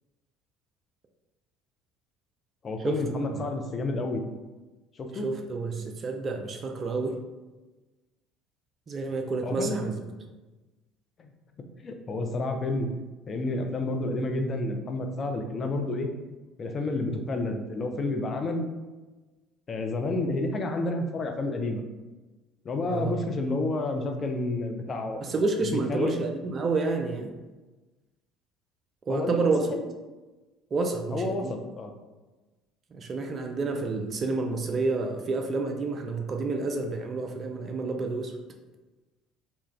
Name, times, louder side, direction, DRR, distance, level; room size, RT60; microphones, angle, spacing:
voice 1, 2.6-4.2 4.9-5.2 9.4-9.9 11.2-11.3 11.8-12.9 13.3-16.1 16.6-18.6 19.7-21.8 22.6-25.2 25.6-26.2 29.1-29.4 29.7-29.8 31.1-31.9, left 2 dB, 35° left, 4 dB, 0.4 m, -30 dB
voice 2, 5.2-7.2 8.9-10.0 22.9-23.2 25.2-27.3 29.1-29.7 30.7-31.6 32.9-38.3, right 3 dB, 35° right, 3 dB, 0.3 m, -29 dB
2.3 x 2.1 x 3.1 m, 1.2 s
figure-of-eight pair, 60°, 0 cm